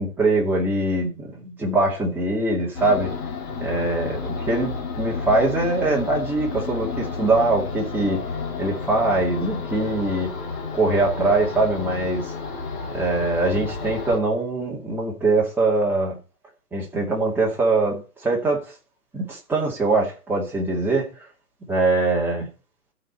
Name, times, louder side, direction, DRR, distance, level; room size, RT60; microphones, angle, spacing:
voice 1, 0.0-3.1 3.6-8.2 8.6-10.3 10.7-12.3 12.8-16.2 16.7-18.7 19.1-21.1 21.7-22.5, right 2 dB, 5° right, 2.2 m, -22 dB
sound 1, 2.7-14.2, left 4 dB, 30° left, 1.9 m, -31 dB
14.5 x 5.2 x 4.2 m
hypercardioid pair, 140°, 46 cm